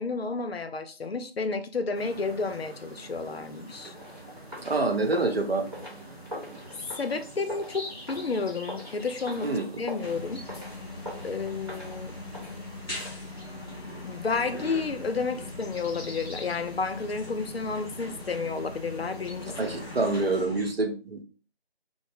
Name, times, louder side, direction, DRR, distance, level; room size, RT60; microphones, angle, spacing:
voice 1, 0.0-3.9 7.0-10.4 11.2-12.1 14.0-19.8, left 4 dB, 70° left, 0.5 m, -31 dB
sound 1, 1.9-20.4, right 1 dB, ahead, 1.4 m, -45 dB
sound 2, 3.9-13.1, equal, 25° right, 1.1 m, -43 dB
voice 2, 4.6-5.6 9.4-9.7 19.6-21.2, right 2 dB, 70° right, 0.8 m, -26 dB
sound 3, 10.0-20.7, left 3 dB, 25° left, 1.5 m, -41 dB
3.6 x 2.1 x 3.2 m
figure-of-eight pair, 165°, 31 cm